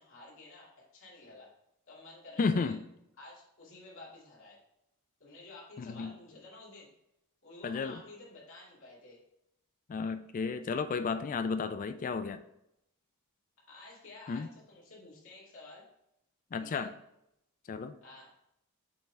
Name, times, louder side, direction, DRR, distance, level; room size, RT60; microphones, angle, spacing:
voice 1, 0.0-1.5 1.9-2.7 3.2-4.6 5.2-6.9 7.4-9.2 13.7-15.8 16.6-16.9 18.0-18.3, left 2 dB, 60° left, -5 dB, 2.1 m, -51 dB
voice 2, 2.4-2.8 5.8-6.1 7.6-8.0 9.9-12.4 14.3-14.5 16.5-16.9 17.7-17.9, left 4 dB, 35° left, 10 dB, 0.3 m, -33 dB
8.3 x 3.4 x 3.3 m, 0.81 s
head